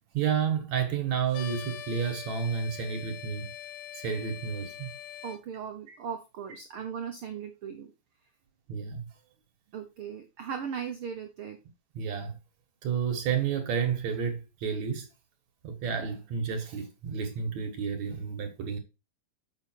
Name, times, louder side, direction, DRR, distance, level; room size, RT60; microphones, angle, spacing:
voice 1, 0.1-3.5 3.9-4.9 5.9-6.0 8.7-9.1 11.9-12.4 12.8-15.1 15.6-18.8, right 7 dB, 60° right, 2.6 m, -31 dB
sound 1, 1.3-5.4, left 10 dB, 75° left, 2.5 m, -43 dB
voice 2, 5.2-7.9 9.7-11.6, right 7 dB, 85° right, 1.1 m, -38 dB
7.2 x 6.7 x 4.5 m
omnidirectional pair, 3.9 m